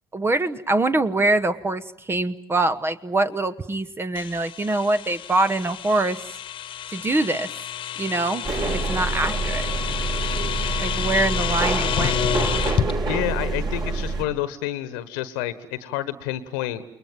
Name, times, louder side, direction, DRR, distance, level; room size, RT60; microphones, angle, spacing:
voice 1, 0.1-6.2 6.9-7.5 8.0-8.5 8.7-9.7 10.8-12.2, right 2 dB, 20° right, 13 dB, 1.2 m, -24 dB
sound 1, 4.2-12.9, left 10 dB, 45° left, 1.4 m, -29 dB
sound 2, 8.4-14.2, right 3 dB, 40° right, 7.3 m, -26 dB
voice 2, 13.1-16.8, left 13 dB, 70° left, 15 dB, 1.4 m, -29 dB
29.5 x 21.5 x 9.2 m, 0.73 s
figure-of-eight pair, 60°, 11 cm